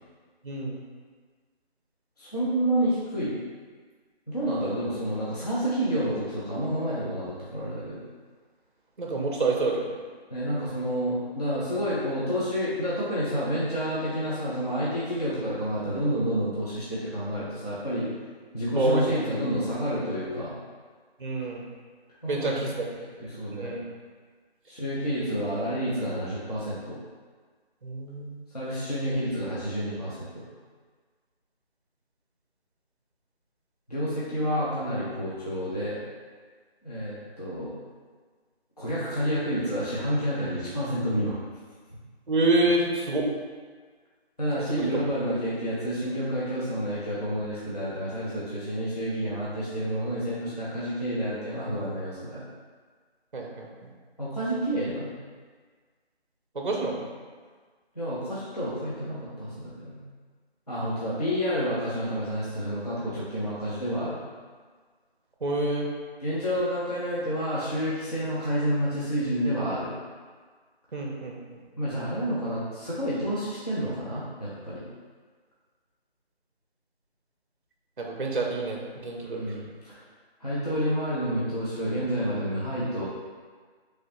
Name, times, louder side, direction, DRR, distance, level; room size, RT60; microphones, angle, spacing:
voice 1, 0.4-0.8 9.0-10.0 18.8-19.2 21.2-21.6 22.3-22.9 23.5-23.8 27.8-28.4 42.3-43.3 44.6-44.9 53.3-53.9 56.5-57.1 65.4-65.9 70.9-71.6 78.0-79.5, right 2 dB, 55° right, 0 dB, 0.5 m, -28 dB
voice 2, 2.2-3.3 4.3-8.0 10.3-18.1 18.5-20.5 22.2-22.8 23.2-23.7 24.7-27.0 28.5-30.5 33.9-36.0 36.8-37.7 38.8-41.4 44.4-52.4 54.2-55.1 58.0-60.0 60.7-64.2 66.2-69.9 71.8-74.8 79.2-80.0 80.4-83.0, equal, 40° left, -9 dB, 0.5 m, -29 dB
3.0 x 2.7 x 2.8 m, 1.5 s
figure-of-eight pair, 175°, 32 cm